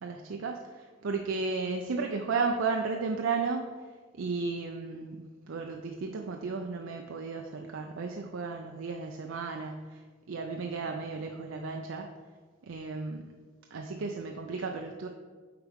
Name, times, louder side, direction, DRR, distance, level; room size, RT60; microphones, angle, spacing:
voice 1, 0.0-3.7 4.2-10.0 10.3-12.1 12.6-13.2 13.7-15.1, right 4 dB, 75° right, 3 dB, 0.5 m, -34 dB
8.1 x 4.8 x 3.6 m, 1.4 s
head